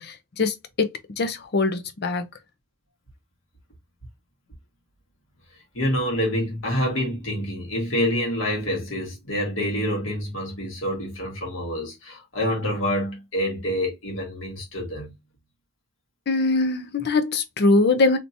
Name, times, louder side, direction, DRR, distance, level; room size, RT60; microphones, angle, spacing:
voice 1, 0.0-2.3 16.3-18.2, left 3 dB, 55° left, 0.6 m, -22 dB
voice 2, 5.7-15.1, equal, 90° left, 1.8 m, -27 dB
3.3 x 2.8 x 2.6 m
head